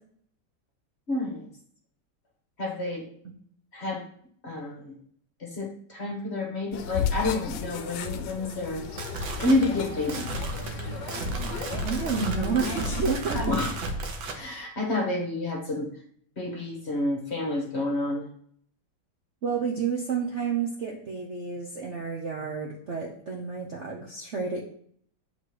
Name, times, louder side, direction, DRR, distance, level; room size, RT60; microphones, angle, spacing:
voice 1, 1.1-1.5 2.6-3.1 3.7-4.0 4.4-4.9 5.4-8.8 9.4-10.3 13.3-13.7 14.3-15.9 16.4-18.2, left 2 dB, 40° left, 1 dB, 1.3 m, -29 dB
sound 1, 6.7-13.2, left 7 dB, 75° left, 1.3 m, -35 dB
sound 2, 8.7-14.4, right 2 dB, 85° right, 1.7 m, -33 dB
voice 2, 11.8-13.5 19.4-24.6, right 5 dB, 50° right, -1 dB, 0.9 m, -30 dB
7.8 x 4.3 x 4.8 m, 0.63 s
omnidirectional pair, 2.1 m